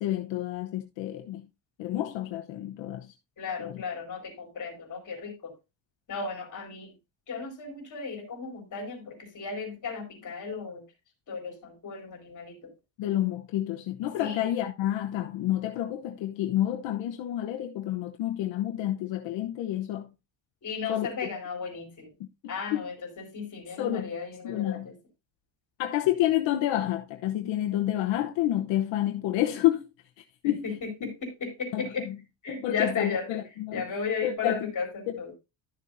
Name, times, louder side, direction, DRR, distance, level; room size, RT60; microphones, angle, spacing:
voice 1, 0.0-1.5 1.8-3.1 3.6-3.8 13.0-20.1 20.9-21.1 22.2-22.9 23.8-24.2 24.4-24.9 25.8-29.9 30.4-30.7 31.0-31.1 31.7-32.2 32.5-33.9 34.2-34.7 35.1-35.2, left 13 dB, 80° left, 1.0 m, -29 dB
voice 2, 3.4-5.5 6.1-7.0 7.3-10.8 11.3-12.7 14.2-14.5 20.6-22.1 22.5-24.9 30.4-32.1 32.4-33.3 33.7-35.3, left 5 dB, 40° left, 3.8 m, -35 dB
12.5 x 6.7 x 2.6 m
cardioid pair, 150°, 44 cm